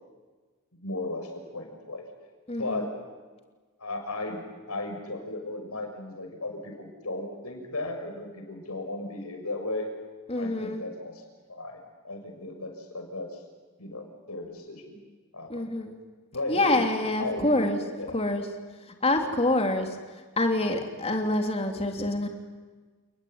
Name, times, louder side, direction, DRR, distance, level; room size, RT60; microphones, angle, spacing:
voice 1, 0.8-2.0 2.6-2.9 3.8-9.9 10.4-11.2 11.5-13.4 13.8-15.0 15.3-15.8 16.3-16.9 17.2-18.2 19.0-19.3, left 2 dB, 80° left, 4 dB, 6.4 m, -35 dB
voice 2, 2.5-2.9 10.3-10.8 15.5-16.0 16.5-17.8 18.1-18.5 19.0-20.0 20.4-22.3, left 2 dB, 25° left, 4 dB, 3.2 m, -26 dB
30.0 x 20.0 x 9.6 m, 1.4 s
head